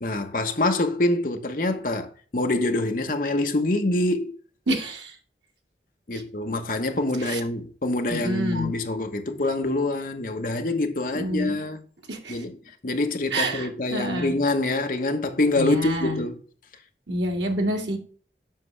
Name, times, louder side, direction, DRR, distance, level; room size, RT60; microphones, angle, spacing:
voice 1, 0.0-4.3 6.1-11.8 12.3-12.6 12.8-16.4, left 2 dB, 50° left, 1.0 m, -25 dB
voice 2, 4.7-5.2 6.1-6.2 7.2-7.4 8.1-8.7 11.1-11.6 12.1-12.4 13.3-14.3 15.5-16.2 17.1-18.0, equal, 85° right, 1.8 m, -28 dB
7.5 x 6.1 x 3.2 m
head